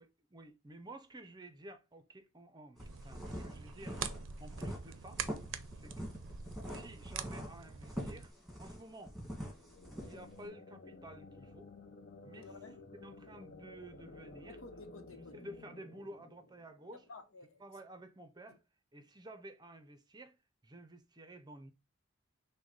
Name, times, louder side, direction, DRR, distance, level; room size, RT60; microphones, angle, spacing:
voice 1, 0.0-4.0 4.4-5.2 5.8-6.0 6.6-8.3 8.6-9.1 9.8-11.7 12.2-12.5 13.0-14.6 15.3-17.1 17.6-18.6 18.9-20.3 20.6-21.7, right 1 dB, 20° right, 0.6 m, -52 dB
sound 1, 2.8-10.4, equal, ahead, 1.6 m, -44 dB
sound 2, 2.8-8.3, right 6 dB, 70° right, 0.5 m, -45 dB
sound 3, 9.5-17.1, left 3 dB, 50° left, 0.6 m, -54 dB
voice 2, 12.3-12.8 14.5-15.4 17.1-17.6 18.5-18.6, left 3 dB, 90° left, 0.9 m, -53 dB
6.1 x 2.2 x 3.9 m
head